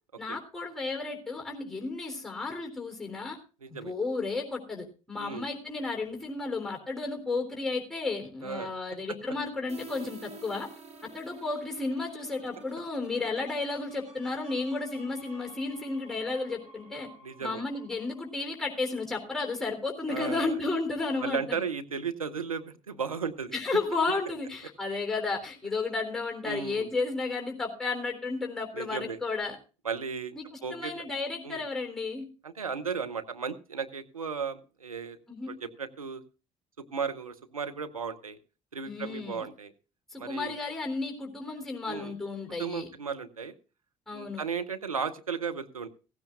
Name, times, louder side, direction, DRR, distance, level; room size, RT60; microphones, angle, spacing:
voice 1, 0.2-3.4 3.7-10.7 11.1-17.1 17.4-21.6 23.5-29.5 30.3-32.2 35.3-35.5 38.8-39.4 40.1-42.9 44.1-44.4, left 3 dB, 5° left, 3 dB, 3.5 m, -33 dB
voice 2, 3.6-3.9 5.2-5.4 8.4-9.2 17.2-17.6 20.1-20.5 21.2-23.5 26.4-26.9 28.7-29.2 29.8-31.1 31.4-31.6 32.4-35.2 35.5-36.2 36.8-38.4 38.7-39.7 40.2-40.6 41.8-42.1 42.6-43.5 44.1-45.9, right 6 dB, 90° right, 7 dB, 0.8 m, -35 dB
sound 1, 9.7-19.3, right 3 dB, 40° right, 7.9 m, -50 dB
16.0 x 15.5 x 2.5 m, 0.34 s
figure-of-eight pair, 55°, 17 cm